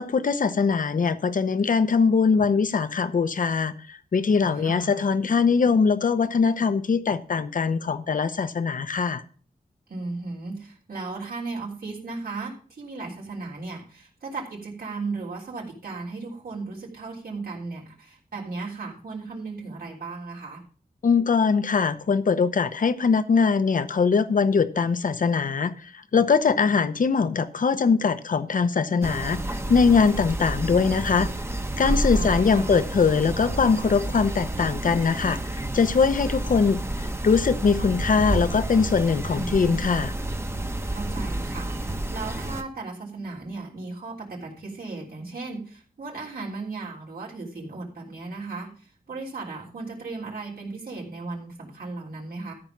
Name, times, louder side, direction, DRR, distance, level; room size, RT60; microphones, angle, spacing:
voice 1, 0.0-9.2 21.0-25.7 26.1-31.3 31.8-36.8 37.2-40.1, left 5 dB, 60° left, 12 dB, 0.8 m, -22 dB
voice 2, 4.5-5.1 9.9-20.6 32.1-32.8 39.3-39.8 40.8-52.5, right 3 dB, 80° right, -4 dB, 3.5 m, -36 dB
sound 1, 29.0-42.6, right 1 dB, 15° right, 0.9 m, -30 dB
13.5 x 5.3 x 6.0 m, 0.42 s
wide cardioid pair, 130°, 16 cm